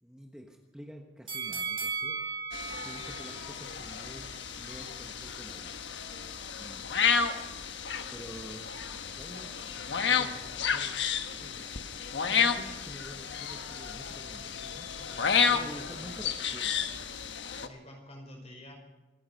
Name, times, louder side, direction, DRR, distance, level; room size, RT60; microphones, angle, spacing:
voice 1, 0.0-2.3 2.8-5.8 6.5-6.9 8.1-11.0 11.3-11.7 12.3-15.1 15.5-16.8, equal, 5° right, 1 dB, 1.2 m, -48 dB
sound 1, 1.3-4.4 4.8-4.9, right 5 dB, 30° right, 4.0 m, -37 dB
sound 2, 2.5-17.7, left 6 dB, 80° left, 1.2 m, -32 dB
voice 2, 15.1-16.1 17.6-18.7, left 1 dB, 35° left, 2 dB, 4.9 m, -49 dB
26.5 x 9.7 x 5.4 m, 1.2 s
head